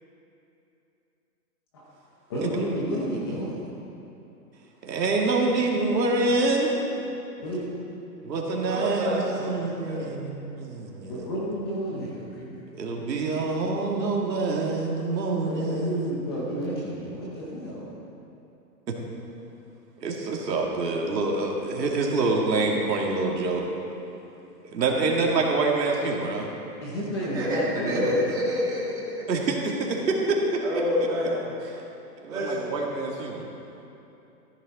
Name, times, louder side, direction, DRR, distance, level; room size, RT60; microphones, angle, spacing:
voice 1, 2.3-3.6 7.4-7.6 11.1-12.7 15.4-17.9 26.8-28.3, equal, 15° left, -5 dB, 0.8 m, -31 dB
voice 2, 4.8-6.8 8.2-11.2 12.7-16.2 16.5-16.8 18.9-19.0 20.0-23.6 24.6-26.5 29.3-30.6 32.2-33.5, right 3 dB, 80° right, -1 dB, 2.3 m, -26 dB
voice 3, 8.5-10.1 27.3-29.2 30.6-31.4 32.3-32.7, left 1 dB, 5° right, -9 dB, 1.7 m, -28 dB
14.5 x 10.5 x 4.2 m, 2.9 s
hypercardioid pair, 170°, 49 cm